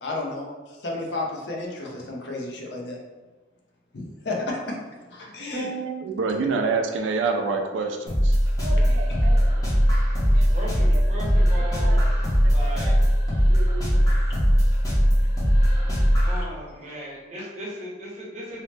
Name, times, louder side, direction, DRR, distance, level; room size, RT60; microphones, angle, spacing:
voice 1, 0.0-3.0 3.9-4.8 5.1-5.8, left 2 dB, 65° left, -1 dB, 0.5 m, -32 dB
voice 2, 5.5-9.5 10.3-11.0 11.6-12.0 12.4-12.9 13.5-13.8, right 4 dB, 85° right, 4 dB, 0.4 m, -29 dB
sound 1, 8.1-16.4, equal, 20° left, 0.6 m, -20 dB
voice 3, 10.2-13.0 15.2-15.3 16.2-18.6, equal, 40° right, -5 dB, 0.7 m, -37 dB
2.7 x 2.0 x 3.2 m, 1.2 s
head